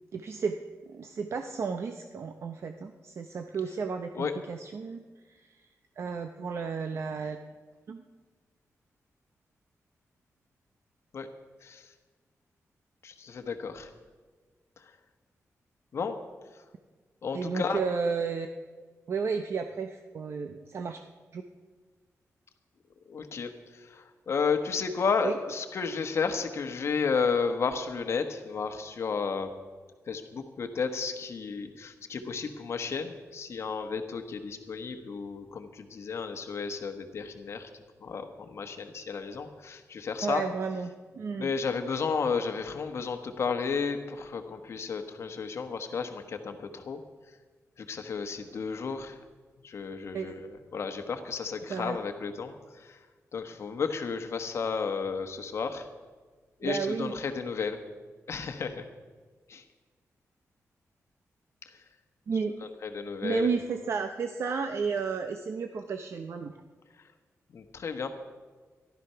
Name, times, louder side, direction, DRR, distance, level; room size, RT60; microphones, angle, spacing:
voice 1, 0.1-0.6 0.9-5.6 6.0-7.4 7.9-8.0 17.3-18.5 19.1-21.0 21.3-21.4 25.2-25.3 40.2-41.5 50.1-50.3 51.7-52.0 56.6-57.1 62.3-62.6 63.2-66.5, right 5 dB, 55° right, 7 dB, 0.7 m, -32 dB
voice 2, 11.6-11.9 13.0-13.9 14.8-14.9 15.9-16.2 17.2-17.8 23.1-29.5 30.1-40.4 41.4-47.0 47.8-49.2 49.6-53.0 53.3-55.9 56.6-57.8 58.3-58.8 59.5-59.6 61.7-61.8 62.6-63.5 67.5-68.1, left 5 dB, 55° left, 6 dB, 1.2 m, -33 dB
14.5 x 12.0 x 5.7 m, 1.4 s
wide cardioid pair, 175°, 6 cm